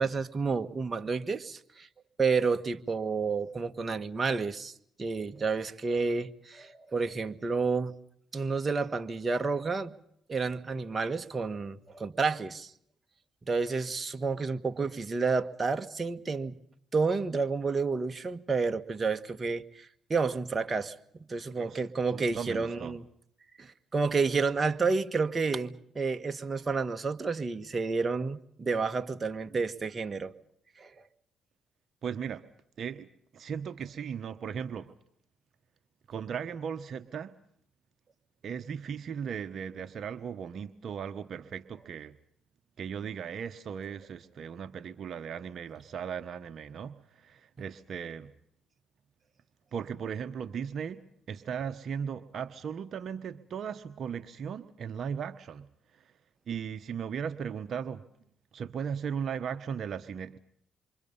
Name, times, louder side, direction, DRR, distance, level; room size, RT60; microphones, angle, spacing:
voice 1, 0.0-1.9 2.2-4.7 5.0-7.9 8.3-9.9 10.3-12.7 13.5-16.6 16.9-20.9 21.3-23.0 23.6-30.3 30.8-31.0, right 4 dB, 30° right, 7 dB, 1.7 m, -30 dB
voice 2, 22.1-23.0 32.0-32.4 32.8-34.9 36.1-37.4 38.4-42.2 42.8-48.3 49.7-56.1 56.5-58.0 58.5-60.4, right 7 dB, 60° right, 8 dB, 1.1 m, -37 dB
28.0 x 24.5 x 5.6 m, 0.68 s
supercardioid pair, 75°, 0 cm